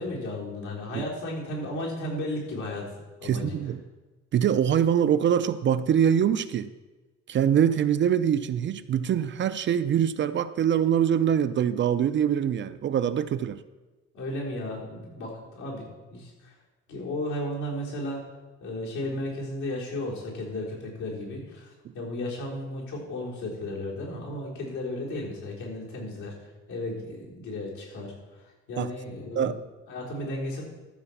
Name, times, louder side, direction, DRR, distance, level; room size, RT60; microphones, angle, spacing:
voice 1, 0.0-2.9 3.2-3.5 14.1-16.6 16.9-18.2 18.6-26.3 26.7-29.5 29.9-30.6, left 1 dB, 80° left, -4 dB, 3.9 m, -34 dB
voice 2, 3.2-3.8 4.3-6.7 7.3-13.6 28.8-28.9 29.4-29.6, right 9 dB, 40° right, 12 dB, 0.4 m, -24 dB
13.0 x 5.0 x 7.1 m, 1.2 s
cardioid pair, 155°, 29 cm